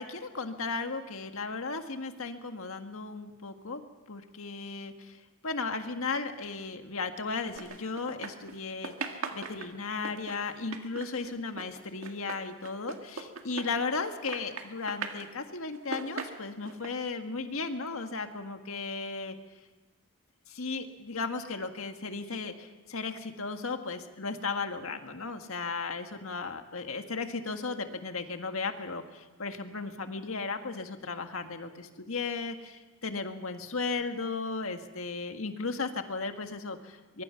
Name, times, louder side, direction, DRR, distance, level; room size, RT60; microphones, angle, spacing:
voice 1, 0.0-3.8 4.1-19.4 20.5-37.2, left 4 dB, 80° left, 6 dB, 1.7 m, -35 dB
sound 1, 7.5-8.6 8.8-14.0 14.3-15.3 15.7-16.9, right 4 dB, 75° right, 1.9 m, -39 dB
24.0 x 22.5 x 5.8 m, 1.2 s
head